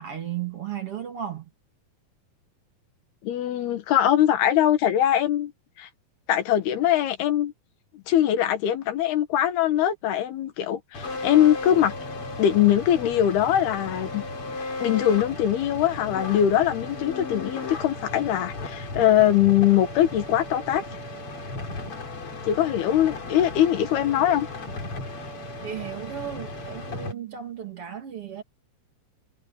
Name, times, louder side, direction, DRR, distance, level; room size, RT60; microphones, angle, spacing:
voice 1, 0.0-1.5 25.6-28.4, right 9 dB, 40° right, 2.6 m, -35 dB
voice 2, 3.2-5.5 5.8-5.9 6.3-7.5 7.9-11.9 12.4-14.2 14.8-20.8 22.4-24.5, left 11 dB, 80° left, 3.5 m, -22 dB
sound 1, 10.9-27.1, left 2 dB, 35° left, 3.7 m, -35 dB
omnidirectional pair, 4.5 m